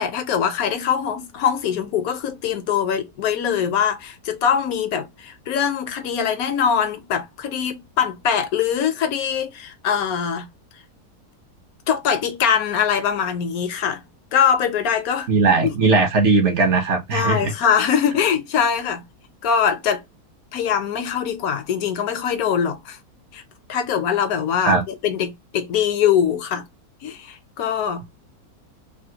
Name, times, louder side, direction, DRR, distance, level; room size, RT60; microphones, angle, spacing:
voice 1, 0.0-10.5 11.9-14.0 14.3-15.3 15.6-15.7 17.1-19.0 19.4-20.0 20.5-23.0 23.3-23.4 23.7-26.6 27.0-28.1, left 8 dB, 70° left, 1.1 m, -22 dB
voice 2, 15.3-17.5 24.6-24.8, right 3 dB, 55° right, 1.0 m, -18 dB
3.4 x 2.3 x 2.7 m
omnidirectional pair, 1.6 m